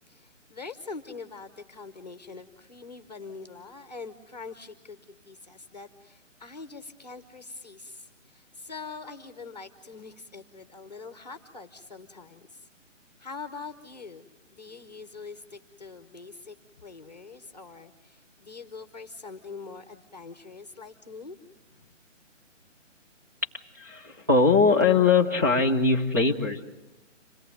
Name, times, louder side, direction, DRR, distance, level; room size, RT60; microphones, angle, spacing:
voice 1, 0.1-12.7 13.2-21.4 21.7-21.9, left 4 dB, 35° left, 9 dB, 1.0 m, -44 dB
voice 2, 23.7-26.6, left 4 dB, 15° right, -4 dB, 0.7 m, -21 dB
27.0 x 17.5 x 7.9 m, 1.0 s
hypercardioid pair, 175°, 38 cm